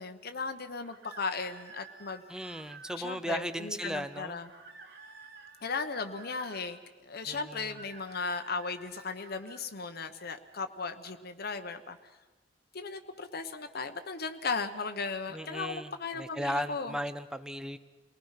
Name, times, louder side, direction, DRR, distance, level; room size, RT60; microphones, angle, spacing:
voice 1, 0.0-2.2 3.0-4.5 5.6-12.0 12.7-16.9, left 4 dB, 55° left, 7 dB, 1.0 m, -36 dB
sound 1, 0.8-3.0 4.4-6.6 7.6-9.7, right 3 dB, 60° right, 2.5 m, -52 dB
voice 2, 2.3-4.4 7.3-7.8 15.3-17.8, equal, 5° right, 12 dB, 0.7 m, -36 dB
28.5 x 20.0 x 5.8 m, 1.3 s
head